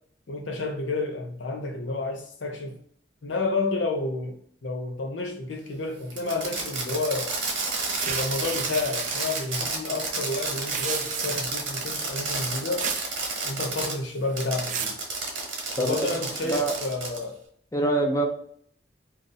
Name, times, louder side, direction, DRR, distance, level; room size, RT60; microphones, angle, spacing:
voice 1, 0.3-2.8 3.2-7.3 8.0-12.9 13.4-14.9 15.8-17.4, left 3 dB, 75° left, 0.7 m, -30 dB
Fireworks, 6.1-13.9 14.4-17.2, right 3 dB, 65° right, 1.1 m, -31 dB
sound 1, 8.0-9.6 10.5-11.6 12.8-13.1 13.4-13.9 14.4-15.0, right 7 dB, 40° right, 0.3 m, -34 dB
voice 2, 17.7-18.3, right 1 dB, 15° left, 0.5 m, -24 dB
2.5 x 2.5 x 3.9 m
head